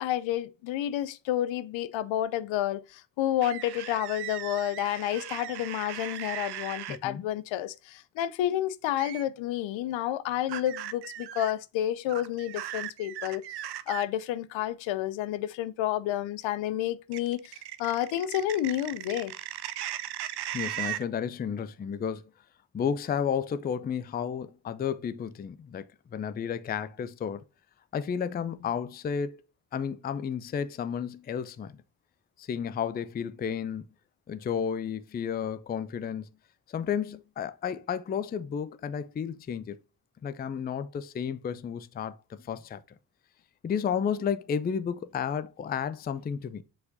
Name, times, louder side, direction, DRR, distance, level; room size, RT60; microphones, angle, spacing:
voice 1, 0.0-13.6 13.9-19.3, left 12 dB, 70° left, 0.6 m, -30 dB
sound 1, 3.4-7.0 9.0-9.2 10.5-11.5 12.1-14.0 17.1-21.0, right 12 dB, 55° right, 0.6 m, -37 dB
voice 2, 6.9-7.2 20.5-22.2 22.7-27.4 27.9-29.4 29.7-31.8 32.4-33.8 34.3-36.3 36.7-39.8 40.2-42.8 43.6-46.6, left 7 dB, 20° left, 0.4 m, -32 dB
4.6 x 4.1 x 2.6 m
supercardioid pair, 55°, 48 cm